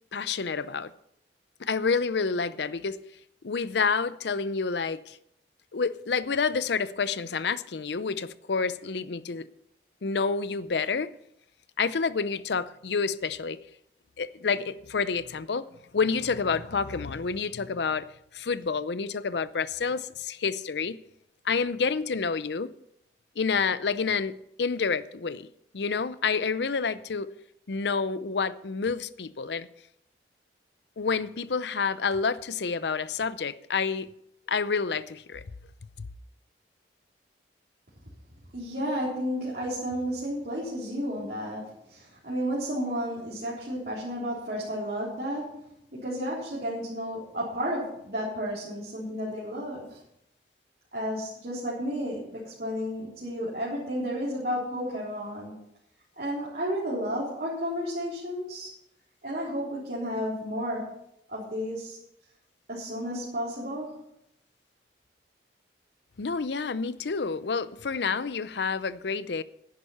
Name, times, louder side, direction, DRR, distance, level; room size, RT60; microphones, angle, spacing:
voice 1, 0.1-0.9 1.6-3.0 3.4-5.2 5.7-9.5 10.0-11.1 11.8-13.6 14.2-15.7 15.9-18.1 18.3-21.0 21.4-22.7 23.4-25.5 25.7-27.3 27.7-29.7 31.0-34.1 34.5-35.4 66.2-69.4, left 5 dB, 75° left, 0.6 m, -28 dB
voice 2, 38.5-45.6 45.9-50.0 50.9-55.6 56.2-58.7 59.2-61.0 61.3-62.0 62.7-64.0, equal, 55° right, 3.6 m, -32 dB
11.0 x 10.5 x 5.6 m
head